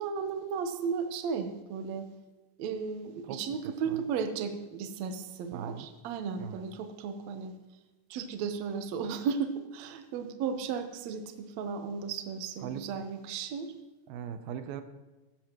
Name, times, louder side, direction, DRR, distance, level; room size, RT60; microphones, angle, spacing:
voice 1, 0.0-2.1 2.6-7.5 8.1-13.7, right 6 dB, 65° right, 7 dB, 1.9 m, -35 dB
voice 2, 3.2-4.0 5.5-5.9 6.4-6.6 12.6-12.8 14.1-14.8, right 8 dB, 85° right, 9 dB, 2.7 m, -40 dB
15.5 x 15.0 x 3.0 m, 1.2 s
omnidirectional pair, 4.1 m